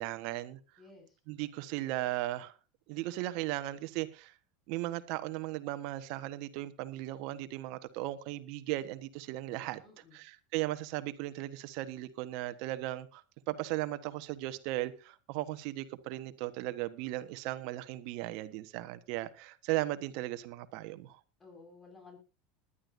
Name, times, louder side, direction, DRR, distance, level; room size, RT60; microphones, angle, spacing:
voice 1, 0.0-0.6 1.3-2.5 2.9-4.3 4.7-9.8 10.1-13.2 13.5-21.2, right 16 dB, 65° right, 12 dB, 1.3 m, -37 dB
voice 2, 0.8-1.2 9.8-10.2 21.4-22.2, left 3 dB, 25° left, 3 dB, 5.7 m, -54 dB
20.5 x 11.5 x 2.7 m, 0.31 s
supercardioid pair, 105°, 0 cm